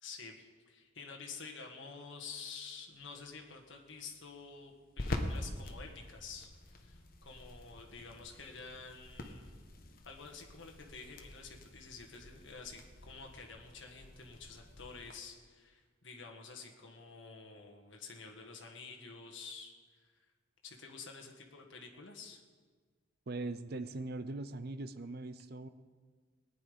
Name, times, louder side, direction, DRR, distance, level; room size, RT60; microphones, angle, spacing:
voice 1, 0.0-9.6 10.0-19.7 20.0-20.1 20.6-22.4, left 4 dB, 65° left, 1 dB, 1.6 m, -49 dB
sound 1, 2.9-15.1, left 1 dB, 45° left, 1.2 m, -46 dB
voice 2, 23.3-25.7, right 2 dB, 50° right, 13 dB, 0.6 m, -41 dB
18.5 x 9.8 x 5.1 m, 1.5 s
head